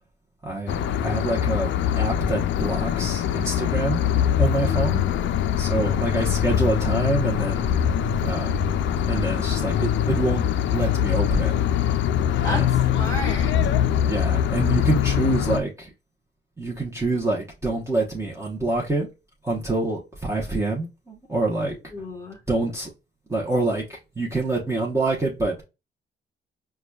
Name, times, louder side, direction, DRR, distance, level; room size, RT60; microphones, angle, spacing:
voice 1, 0.4-4.1 4.4-5.1 5.6-7.7 8.2-8.7 9.1-10.4 10.7-11.5 12.5-12.8 14.1-15.9 16.6-19.1 19.4-21.7 22.5-22.9 23.3-25.6, right 2 dB, 15° right, 0.9 m, -26 dB
sound 1, 0.7-15.6, left 9 dB, 70° left, 0.4 m, -23 dB
voice 2, 4.5-5.3 12.4-13.6 21.4-22.4, equal, 15° left, 1.5 m, -34 dB
4.8 x 2.3 x 2.2 m
cardioid pair, 90°, 20 cm